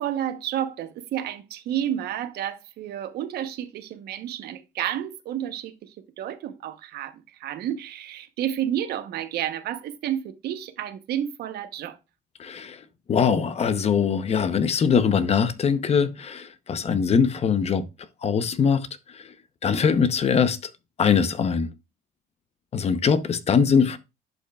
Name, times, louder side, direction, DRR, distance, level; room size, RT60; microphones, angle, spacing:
voice 1, 0.0-12.0, right 11 dB, 70° right, 1.0 m, -31 dB
voice 2, 12.4-12.8 13.1-17.9 18.2-18.9 19.1-19.3 19.6-20.6 21.0-21.7 22.7-24.0, left 6 dB, 40° left, 0.8 m, -22 dB
11.0 x 5.3 x 2.3 m
cardioid pair, 110°, 17 cm